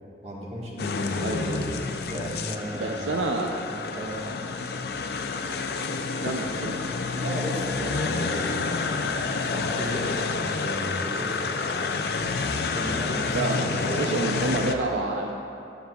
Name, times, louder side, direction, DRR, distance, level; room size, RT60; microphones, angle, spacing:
voice 1, 0.2-1.6 2.1-3.2 3.9-4.2 7.1-11.5 12.7-14.2, equal, 35° right, -4 dB, 1.5 m, -35 dB
sound 1, 0.8-14.8, left 4 dB, 60° left, 0.4 m, -29 dB
voice 2, 1.2-1.7 2.7-3.5 6.2-6.9 13.3-15.3, right 2 dB, 80° right, 2 dB, 0.5 m, -29 dB
14.5 x 8.0 x 2.3 m, 2.8 s
head